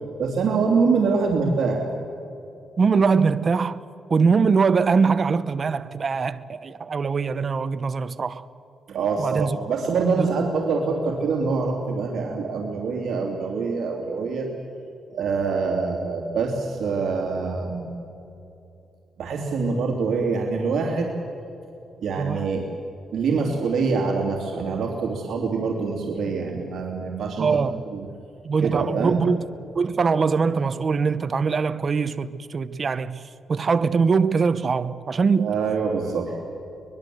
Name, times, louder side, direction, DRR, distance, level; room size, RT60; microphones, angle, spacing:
voice 1, 0.2-1.8 8.9-14.5 15.1-17.9 19.2-21.1 22.0-22.6 23.1-27.5 27.9-28.1 28.6-29.2 35.4-36.3, right 4 dB, 70° right, 3.0 m, -25 dB
voice 2, 2.8-3.8 4.1-8.4 9.2-9.6 10.2-10.3 22.2-22.5 27.4-27.7 28.4-29.4 29.8-33.2 33.5-35.5, right 5 dB, 40° right, 0.8 m, -22 dB
23.5 x 21.0 x 7.9 m
cardioid pair, 110°, 0 cm